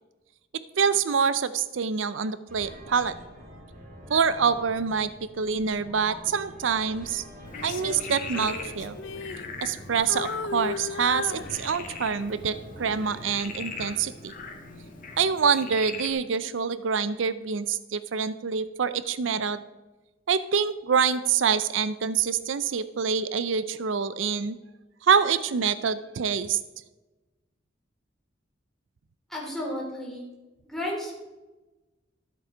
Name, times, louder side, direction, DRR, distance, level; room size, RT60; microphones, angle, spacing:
voice 1, 0.8-3.1 4.1-5.1 5.4-7.2 7.6-9.0 9.6-14.3 15.2-19.6 20.3-24.6 25.0-26.6, right 6 dB, 85° right, 14 dB, 0.5 m, -26 dB
sound 1, 2.5-15.2, equal, 50° right, 4.3 m, -47 dB
voice 2, 6.0-6.3 29.3-30.2 30.6-31.1, left 1 dB, ahead, -3 dB, 3.2 m, -33 dB
Frog, 7.4-16.1, left 3 dB, 45° left, 1.7 m, -41 dB
Female singing, 7.5-9.8 10.1-12.1 12.7-12.9, left 5 dB, 85° left, 0.8 m, -36 dB
13.0 x 7.9 x 5.0 m, 1.1 s
head